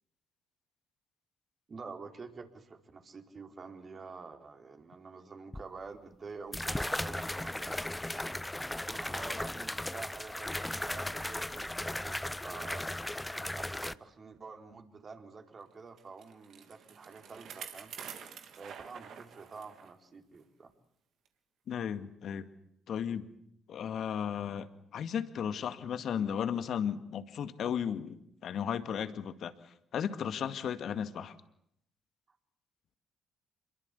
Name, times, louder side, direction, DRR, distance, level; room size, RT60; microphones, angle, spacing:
voice 1, 1.7-7.8 8.8-12.8 13.5-18.0 18.6-20.7, right 4 dB, 40° right, 5 dB, 4.4 m, -47 dB
sound 1, 5.5-5.6 6.5-13.9, left 1 dB, 10° left, 1.0 m, -36 dB
Bicycle, 16.0-19.9 20.3-20.4 21.2-21.3, right 7 dB, 65° right, 3.3 m, -48 dB
voice 2, 21.7-22.5 22.9-23.3 23.7-29.5 29.9-31.3, left 8 dB, 60° left, 11 dB, 2.1 m, -35 dB
27.5 x 22.5 x 8.4 m, 0.74 s
hypercardioid pair, 45°, 0 cm